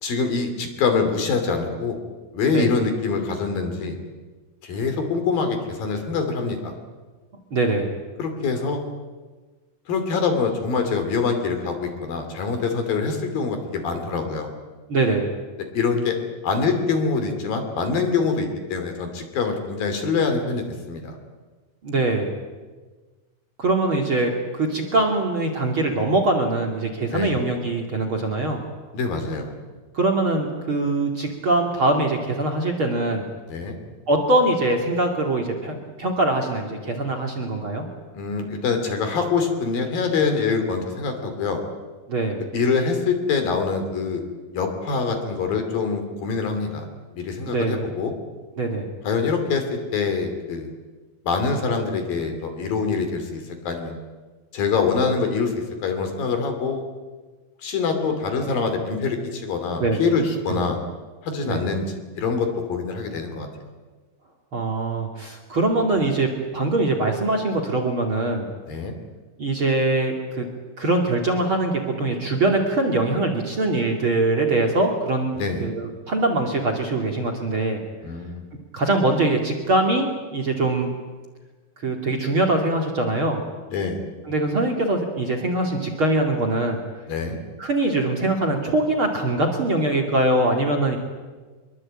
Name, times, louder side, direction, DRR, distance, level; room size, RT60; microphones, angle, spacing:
voice 1, 0.0-2.0 2.3-4.0 4.6-6.7 8.2-8.8 9.9-14.5 15.7-16.2 16.4-21.2 27.1-27.3 28.9-29.5 33.5-33.8 38.1-41.6 42.5-44.2 44.5-46.9 47.1-48.1 49.0-50.7 51.2-54.0 54.5-56.8 57.6-60.8 61.2-63.5 68.7-68.9 75.3-75.7 78.0-78.4 83.7-84.0 87.1-87.4, left 4 dB, 60° left, 6 dB, 4.4 m, -24 dB
voice 2, 7.5-7.9 14.9-15.3 21.8-22.3 23.6-28.6 29.9-33.2 34.1-37.9 42.1-42.4 47.5-47.8 48.6-48.9 59.8-60.0 60.5-60.7 61.4-61.6 64.5-68.5 69.4-70.5 70.8-77.8 78.7-80.9 81.8-83.4 84.3-86.8 87.6-91.0, right 2 dB, 35° right, 4 dB, 2.7 m, -22 dB
24.5 x 22.5 x 8.7 m, 1.4 s
omnidirectional pair, 4.8 m